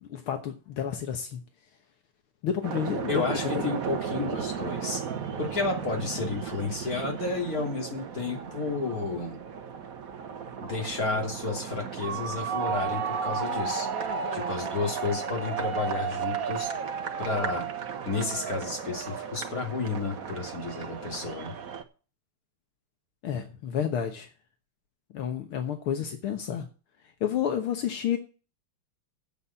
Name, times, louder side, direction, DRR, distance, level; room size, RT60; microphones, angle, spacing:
voice 1, 0.0-1.4 2.4-3.6 23.2-24.3 25.1-26.7 27.2-28.2, left 8 dB, 75° left, 5 dB, 2.1 m, -30 dB
sound 1, 2.6-21.8, right 6 dB, 50° right, 1.3 m, -34 dB
voice 2, 3.1-5.0 5.4-9.4 10.6-13.9 14.3-16.7 17.2-17.7 18.0-21.6, left 3 dB, 40° left, 1 dB, 3.4 m, -31 dB
8.5 x 7.4 x 8.5 m, 0.35 s
omnidirectional pair, 2.4 m